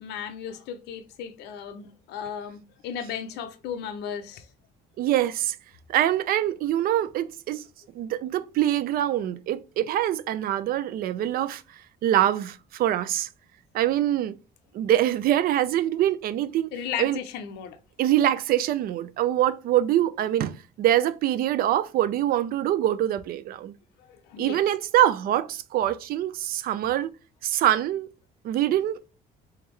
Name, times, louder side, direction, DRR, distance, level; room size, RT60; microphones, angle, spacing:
voice 1, 0.0-4.5 16.7-17.8 24.0-24.6, left 8 dB, 85° left, 0.6 m, -35 dB
voice 2, 5.0-5.6 5.9-7.6 8.0-11.6 12.0-13.3 13.7-14.3 14.7-16.7 17.0-17.2 18.0-23.7 24.4-27.1 27.4-28.1 28.4-29.1, right 12 dB, 60° right, 0.4 m, -24 dB
3.5 x 3.4 x 3.1 m
cardioid pair, 110°, 17 cm